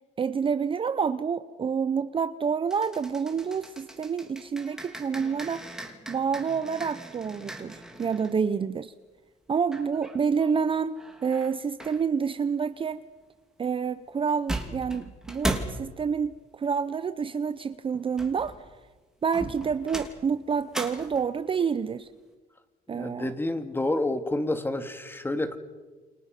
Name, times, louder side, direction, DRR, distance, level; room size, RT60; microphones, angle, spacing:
voice 1, 0.2-5.6 6.1-8.9 9.5-13.0 13.6-18.5 19.2-22.1 22.9-23.3, right 6 dB, 30° right, 13 dB, 0.8 m, -28 dB
sound 1, 2.7-8.4 9.7-10.5 11.0-12.0 14.1-14.2 14.5-15.9 17.9-18.8 19.3-21.4, right 1 dB, 5° right, 3.2 m, -37 dB
voice 2, 22.9-25.6, left 2 dB, 15° left, 8 dB, 2.3 m, -29 dB
29.5 x 26.0 x 6.0 m, 1.3 s
cardioid pair, 110°, 17 cm